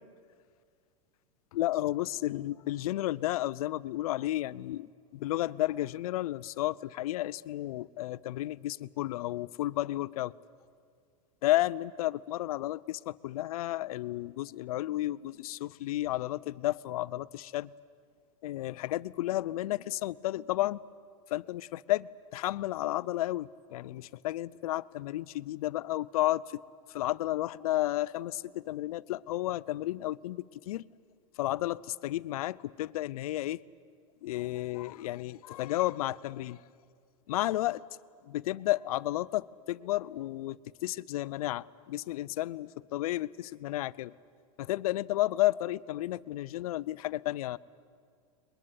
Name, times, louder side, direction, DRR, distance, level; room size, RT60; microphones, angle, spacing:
voice 1, 1.5-10.3 11.4-17.7 18.4-20.8 21.3-26.6 26.9-30.9 31.4-33.6 34.2-36.6 37.3-37.8 38.3-44.1 44.6-47.6, left 15 dB, 75° left, 18 dB, 0.6 m, -32 dB
23.0 x 21.5 x 9.9 m, 2.1 s
hypercardioid pair, 110°, 19 cm